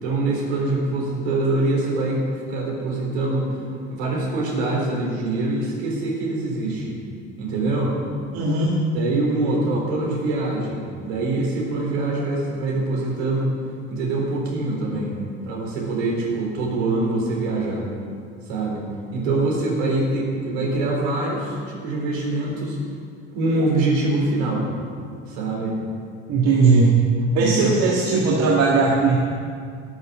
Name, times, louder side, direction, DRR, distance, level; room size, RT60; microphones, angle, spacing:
voice 1, 0.0-3.5 3.9-7.0 7.4-8.0 8.9-13.5 13.9-15.2 15.4-17.9 18.4-18.8 19.1-22.8 23.3-24.7 25.3-25.8 27.4-27.7 28.2-28.3, right 2 dB, 65° right, -2 dB, 4.1 m, -24 dB
voice 2, 8.3-8.8 26.3-27.0 27.3-29.2, right 4 dB, 45° right, -2 dB, 1.8 m, -18 dB
13.5 x 8.0 x 8.2 m, 2.2 s
figure-of-eight pair, 60°, 34 cm